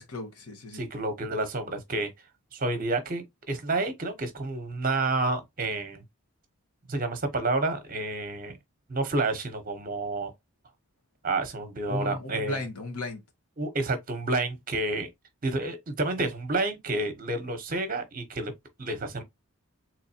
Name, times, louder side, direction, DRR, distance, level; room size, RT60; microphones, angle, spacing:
voice 1, 0.0-0.8 11.9-13.2, left 2 dB, 85° left, 1.1 m, -35 dB
voice 2, 0.7-2.1 2.5-6.0 6.9-8.6 8.9-10.3 11.2-12.6 13.6-15.1 15.4-18.5 18.8-19.2, right 2 dB, 40° right, 0.8 m, -29 dB
3.8 x 3.0 x 2.7 m
head